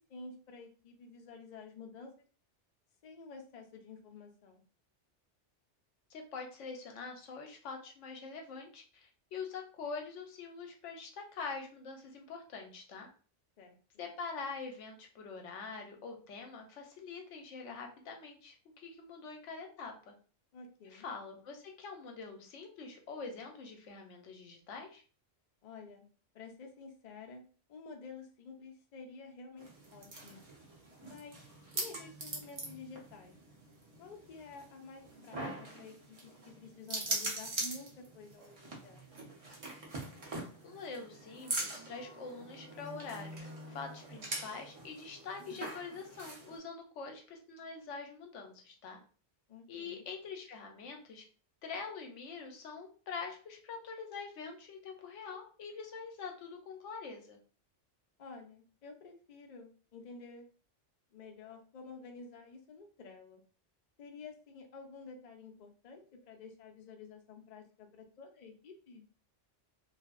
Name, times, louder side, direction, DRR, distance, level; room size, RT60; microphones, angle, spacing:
voice 1, 0.1-2.1 3.0-4.6 13.6-14.1 20.5-21.1 25.6-26.0 26.3-27.4 27.7-30.4 31.0-31.4 31.7-33.3 34.0-39.3 49.5-50.0 58.2-60.5 61.1-63.4 64.0-69.0, left 4 dB, 50° left, 3 dB, 0.5 m, -51 dB
voice 2, 6.1-13.1 14.0-20.1 20.8-25.0 40.6-49.0 49.7-51.2 51.6-57.4, left 4 dB, 80° left, 2 dB, 1.0 m, -45 dB
sound 1, 29.6-46.6, right 2 dB, 35° right, 0.6 m, -43 dB
2.7 x 2.4 x 2.4 m, 0.39 s
omnidirectional pair, 1.2 m